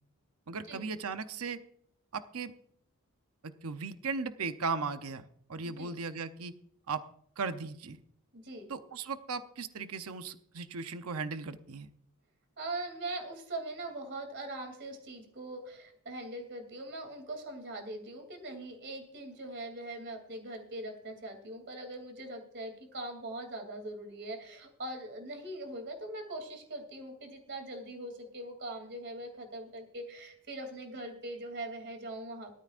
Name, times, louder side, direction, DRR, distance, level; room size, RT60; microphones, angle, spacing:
voice 1, 0.5-1.6 2.1-2.5 3.4-6.5 6.9-7.0 7.4-8.0 8.7-11.9, right 4 dB, 70° right, 10 dB, 0.7 m, -37 dB
voice 2, 8.3-8.7 12.6-32.6, right 1 dB, 55° right, 5 dB, 2.9 m, -41 dB
18.5 x 13.0 x 2.5 m, 0.69 s
head